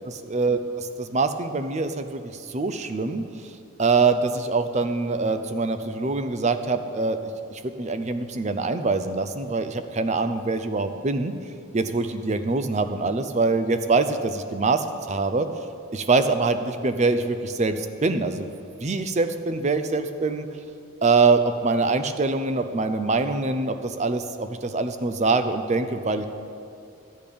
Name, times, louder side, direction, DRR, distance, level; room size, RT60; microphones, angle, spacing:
voice 1, 0.0-0.6 1.0-3.2 3.8-7.2 7.5-11.3 11.7-15.5 15.9-18.5 18.8-20.5 21.0-26.3, right 3 dB, 30° right, 9 dB, 0.5 m, -24 dB
11.5 x 8.6 x 5.3 m, 2.6 s
head